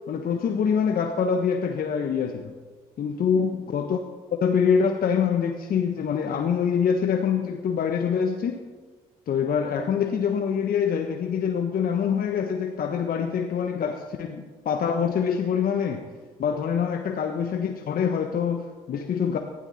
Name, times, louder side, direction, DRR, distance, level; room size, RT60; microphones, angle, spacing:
voice 1, 0.1-2.5 3.0-8.6 9.3-16.0 16.4-19.4, left 7 dB, 55° left, 4 dB, 1.3 m, -25 dB
19.0 x 13.0 x 4.3 m, 1.4 s
hypercardioid pair, 55°, 18 cm